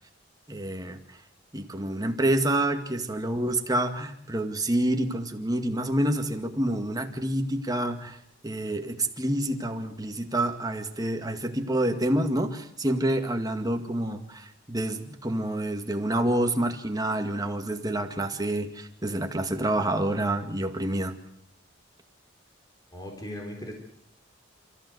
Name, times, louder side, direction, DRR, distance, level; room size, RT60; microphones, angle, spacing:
voice 1, 0.5-1.0 1.5-8.2 8.4-21.1, right 1 dB, 20° right, 5 dB, 2.1 m, -28 dB
voice 2, 22.9-23.7, left 1 dB, 20° left, 1 dB, 4.2 m, -38 dB
30.0 x 15.0 x 8.0 m, 0.72 s
head